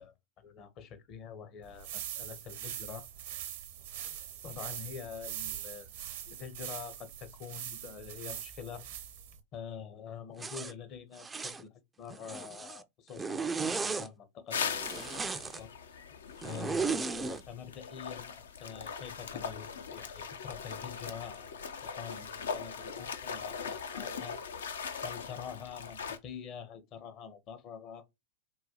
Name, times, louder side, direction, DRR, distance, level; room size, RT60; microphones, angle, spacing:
voice 1, 0.0-3.1 4.4-5.9 6.3-8.9 9.5-13.6 13.8-15.7 16.4-21.5 21.8-24.4 25.0-28.0, left 7 dB, 40° left, 0.7 m, -46 dB
sound 1, 1.6-9.4, right 11 dB, 55° right, 0.6 m, -42 dB
Zipper (clothing), 10.4-10.7 11.2-11.6 12.1-12.8 13.2-14.1 14.7-15.6 16.4-17.4, right 4 dB, 15° right, 0.3 m, -35 dB
sound 2, 14.5-26.2, left 6 dB, 70° left, 0.5 m, -40 dB
3.8 x 2.2 x 2.8 m
figure-of-eight pair, 95°, 0 cm